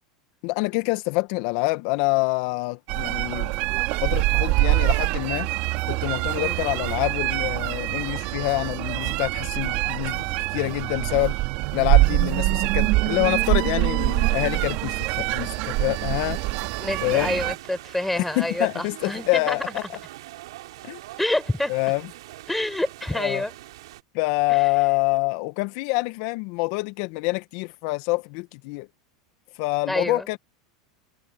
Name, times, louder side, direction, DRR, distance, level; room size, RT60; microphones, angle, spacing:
voice 1, 0.4-3.5 4.0-5.5 5.8-10.2 10.5-11.4 11.7-16.4 17.0-17.3 18.2-19.8 20.8-21.0 21.7-22.0 23.1-23.4 24.1-28.9 29.5-30.4, left 25 dB, 60° left, 1.6 m, -26 dB
sound 1, 2.9-17.6, right 22 dB, 55° right, 2.4 m, -24 dB
sound 2, 14.0-24.0, right 16 dB, 75° right, 4.3 m, -42 dB
voice 2, 16.8-19.6 21.2-21.7 22.5-23.5 24.5-24.7 29.9-30.2, left 1 dB, 5° left, 5.1 m, -27 dB
hypercardioid pair, 100°, 3 cm